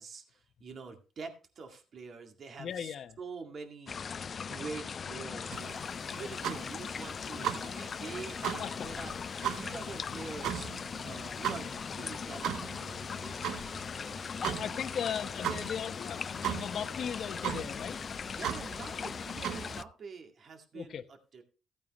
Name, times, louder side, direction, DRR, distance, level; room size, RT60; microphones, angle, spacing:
voice 1, 0.0-4.0 4.3-9.2 9.5-14.0 18.3-21.4, right 4 dB, 55° right, 2.1 m, -46 dB
voice 2, 2.6-3.2 6.1-6.3 8.4-8.9 13.9-18.0 20.7-21.0, left 8 dB, 65° left, 0.9 m, -38 dB
sound 1, 3.9-19.8, left 6 dB, 45° left, 0.4 m, -39 dB
sound 2, 5.5-19.8, right 10 dB, 80° right, 0.7 m, -39 dB
15.0 x 8.9 x 3.1 m
cardioid pair, 90°, 0 cm